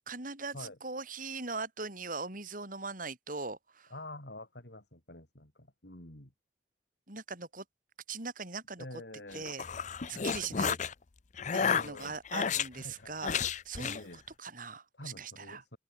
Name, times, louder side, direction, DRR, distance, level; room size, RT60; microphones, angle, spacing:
voice 1, 0.0-3.9 7.1-7.6 8.1-8.9 9.3-9.7 10.1-10.8 11.5-15.6, right 4 dB, 50° right, 5.8 m, -40 dB
voice 2, 3.9-6.3 8.8-9.5 10.1-10.7 11.6-12.2 12.8-13.3 13.8-14.2 15.0-15.8, left 1 dB, 70° left, 5.4 m, -47 dB
sound 1, 9.3-10.9 11.4-12.7 13.2-14.0, left 6 dB, 45° left, 0.6 m, -31 dB
open air
head